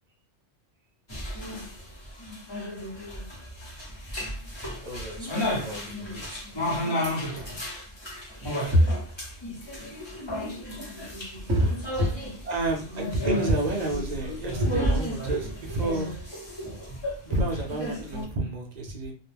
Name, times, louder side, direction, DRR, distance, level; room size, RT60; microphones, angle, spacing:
sound 1, 1.1-18.2, equal, 25° left, 0.8 m, -33 dB
voice 1, 4.5-6.6 8.7-8.9 11.5-12.1, equal, 25° right, -4 dB, 1.1 m, -27 dB
voice 2, 12.5-16.2 17.2-19.1, right 2 dB, 55° right, 2 dB, 0.5 m, -29 dB
2.3 x 2.1 x 3.3 m, 0.37 s
omnidirectional pair, 1.2 m